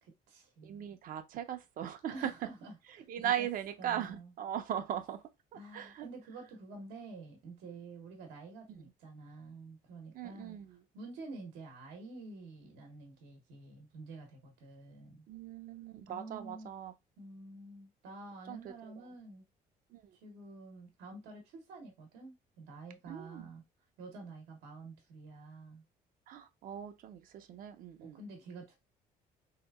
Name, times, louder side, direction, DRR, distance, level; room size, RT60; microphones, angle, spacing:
voice 1, 0.0-1.0 2.1-3.5 3.8-4.3 5.5-15.3 16.1-16.7 17.2-19.4 20.1-23.6 24.0-25.8 28.0-28.8, right 3 dB, 90° right, 0.8 m, -49 dB
voice 2, 0.6-2.3 3.1-5.2 5.7-6.1 8.7-8.8 10.1-10.8 15.3-16.9 18.5-18.7 19.9-20.1 23.1-23.5 26.3-28.2, right 10 dB, 55° right, 0.5 m, -39 dB
3.3 x 2.8 x 2.2 m
cardioid pair, 110°, 17 cm